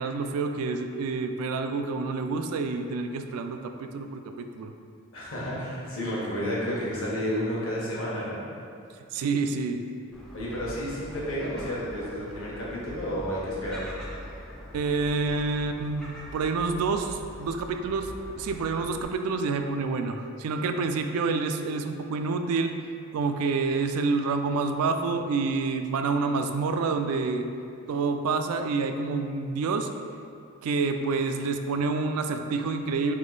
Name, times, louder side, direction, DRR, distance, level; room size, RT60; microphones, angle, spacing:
voice 1, 0.0-4.7 9.1-9.8 14.7-22.7 23.1-27.5 27.9-29.9 30.6-33.1, right 4 dB, 80° right, 8 dB, 0.3 m, -28 dB
voice 2, 5.1-8.4 10.3-13.9, equal, 65° left, -6 dB, 1.1 m, -31 dB
Gull seagull, 10.1-19.0, equal, 5° left, 0.3 m, -43 dB
3.6 x 2.9 x 3.9 m, 2.5 s
head